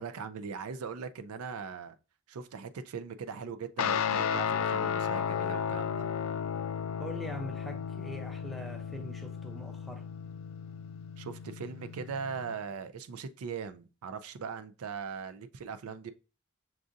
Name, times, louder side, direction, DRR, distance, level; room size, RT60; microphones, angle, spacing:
voice 1, 0.0-2.0 2.3-6.1 11.2-16.1, right 6 dB, 85° right, 0.4 m, -40 dB
Guitar, 3.8-12.5, left 7 dB, 70° left, 0.3 m, -34 dB
voice 2, 7.0-10.1, equal, ahead, 0.5 m, -43 dB
6.0 x 2.5 x 2.6 m
head